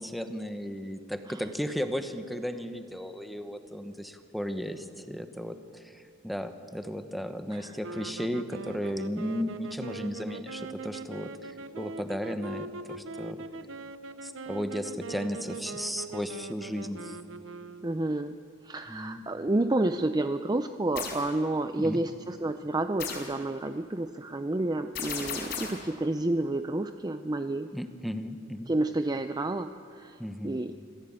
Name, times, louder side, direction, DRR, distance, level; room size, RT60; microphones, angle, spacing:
voice 1, 0.0-11.3 11.8-13.4 14.2-17.2 18.9-19.2 21.8-22.0 27.7-28.7 30.2-30.7, equal, ahead, 8 dB, 1.1 m, -35 dB
sound 1, 7.8-18.2, right 3 dB, 75° right, 0.8 m, -41 dB
voice 2, 17.8-27.7 28.7-30.2 30.4-30.7, right 2 dB, 20° right, 9 dB, 0.5 m, -30 dB
sound 2, 20.9-21.3 23.0-23.4 24.9-25.9, left 6 dB, 55° left, 4.6 m, -35 dB
26.0 x 16.0 x 8.8 m, 2.5 s
head